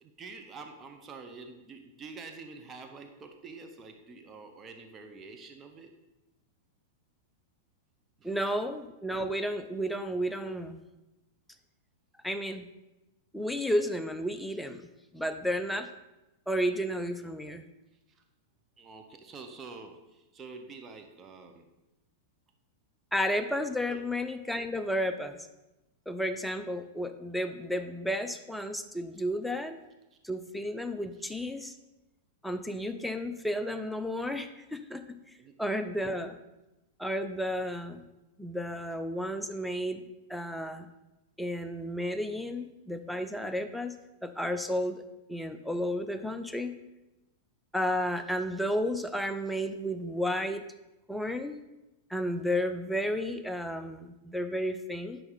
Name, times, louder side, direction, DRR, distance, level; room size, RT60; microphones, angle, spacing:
voice 1, 0.0-5.9 8.2-8.4 18.1-18.2 18.8-21.7 23.9-24.0 29.1-29.2 30.1-30.2 31.2-31.3 35.4-35.5, right 4 dB, 25° right, 4 dB, 1.1 m, -47 dB
voice 2, 8.2-10.8 12.2-12.7 13.3-14.9 15.1-15.9 16.5-17.6 23.1-25.4 26.1-29.8 30.2-31.8 32.4-35.0 35.6-36.4 37.0-38.1 38.4-40.0 40.3-40.9 41.4-43.9 44.2-45.0 45.3-46.7 47.7-50.6 51.1-51.6 52.1-55.2, equal, 5° left, 8 dB, 0.6 m, -32 dB
9.8 x 6.1 x 4.1 m, 0.99 s
hypercardioid pair, 110°, 0 cm